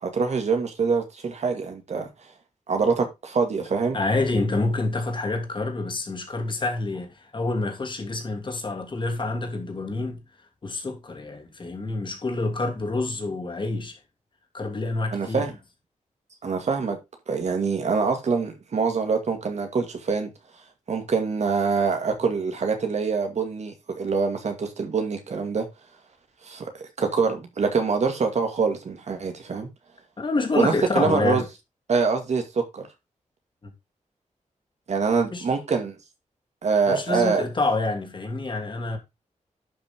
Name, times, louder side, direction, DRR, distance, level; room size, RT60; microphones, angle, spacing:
voice 1, 0.0-2.1 2.7-4.0 15.1-15.5 16.4-17.0 17.3-20.3 20.9-25.7 26.4-29.7 30.6-31.4 31.9-32.9 34.9-35.9 36.6-37.4, right 5 dB, 60° right, 2.4 m, -25 dB
voice 2, 3.9-10.2 10.6-14.0 14.5-15.5 30.2-31.5 33.6-33.7 35.3-35.4 36.9-39.0, left 2 dB, 40° left, 2.8 m, -27 dB
11.5 x 6.0 x 3.7 m
wide cardioid pair, 180°, 13 cm